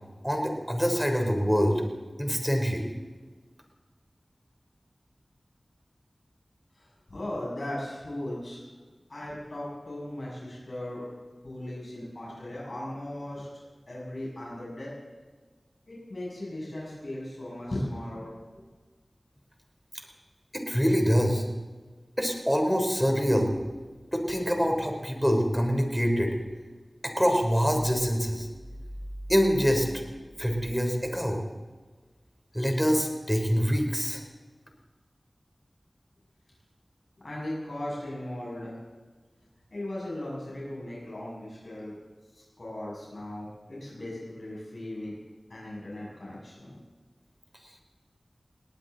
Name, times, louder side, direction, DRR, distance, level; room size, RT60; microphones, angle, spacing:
voice 1, 0.2-1.8 2.2-2.9 20.5-21.5 22.2-23.5 24.1-26.3 27.0-28.5 29.3-29.9 30.4-31.4 32.5-34.2, equal, ahead, 2 dB, 3.5 m, -25 dB
voice 2, 6.7-8.6 9.1-11.1 11.4-14.9 15.9-18.6 37.2-38.8 39.7-41.9 42.3-45.1 45.5-46.8, left 1 dB, 65° left, -6 dB, 6.6 m, -37 dB
19.5 x 18.5 x 4.0 m, 1.4 s
wide cardioid pair, 45°, 0 cm